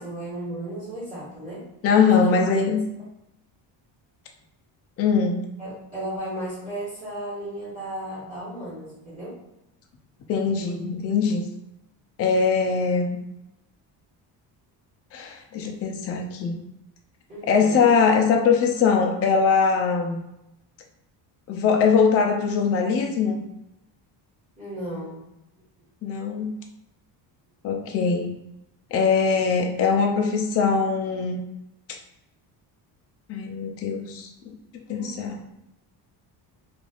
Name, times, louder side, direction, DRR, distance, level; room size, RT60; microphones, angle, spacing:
voice 1, 0.0-1.6 2.1-2.6 5.6-9.4 17.3-17.9 24.6-25.2 34.8-35.2, right 1 dB, 20° right, -10 dB, 1.4 m, -34 dB
voice 2, 1.8-2.8 5.0-5.5 10.3-11.4 12.2-13.2 15.1-16.6 17.5-20.2 21.5-23.4 26.0-26.5 27.6-28.3 28.9-31.4 33.3-34.3 34.9-35.4, left 5 dB, 35° left, 2 dB, 0.4 m, -21 dB
3.2 x 2.5 x 2.4 m, 0.87 s
cardioid pair, 145°, 43 cm